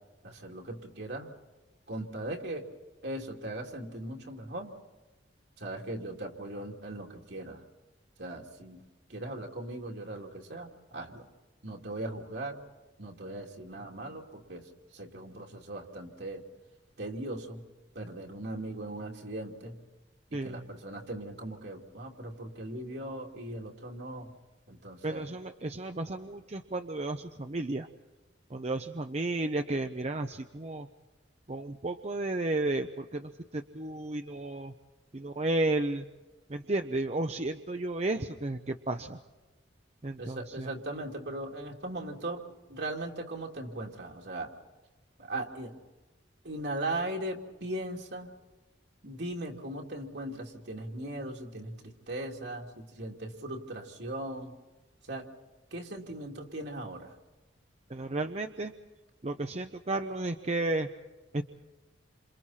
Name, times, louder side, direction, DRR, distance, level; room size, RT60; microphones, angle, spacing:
voice 1, 0.2-1.3 1.9-2.7 3.0-4.7 5.6-7.6 8.2-8.8 9.1-11.2 11.6-12.6 13.0-16.4 17.0-17.7 17.9-19.8 20.3-24.3 24.7-25.3 40.2-42.4 42.7-44.5 45.2-45.7 46.4-48.3 49.0-54.5 55.0-55.3 55.7-57.1, right 1 dB, 65° right, 1 dB, 2.9 m, -39 dB
voice 2, 20.3-20.6 25.0-27.9 28.5-30.9 31.5-34.7 35.1-36.1 36.5-39.2 40.0-40.7 57.9-58.7 59.2-60.9 61.3-61.4, right 2 dB, 35° right, 6 dB, 0.8 m, -33 dB
28.5 x 27.5 x 4.3 m, 1.2 s
head